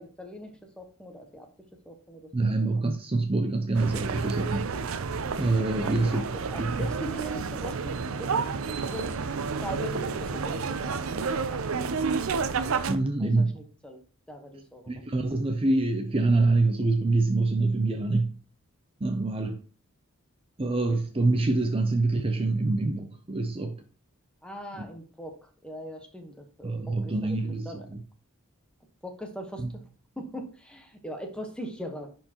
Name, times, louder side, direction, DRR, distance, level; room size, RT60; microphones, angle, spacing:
voice 1, 0.0-1.5 1.8-2.3 5.8-6.2 6.5-8.5 8.8-9.1 9.6-11.7 13.2-14.0 14.3-15.1 24.4-27.4 27.6-27.9 29.0-29.8 30.2-32.1, equal, 5° left, 1.1 m, -41 dB
voice 2, 2.3-4.7 5.4-6.2 6.6-6.9 12.9-13.6 14.9-18.3 19.0-19.6 20.6-23.8 24.7-24.8 26.6-28.0 29.6-29.7, right 2 dB, 25° right, 0.6 m, -25 dB
sound 1, 3.7-12.9, right 5 dB, 80° right, 0.5 m, -30 dB
10.5 x 4.4 x 2.9 m
head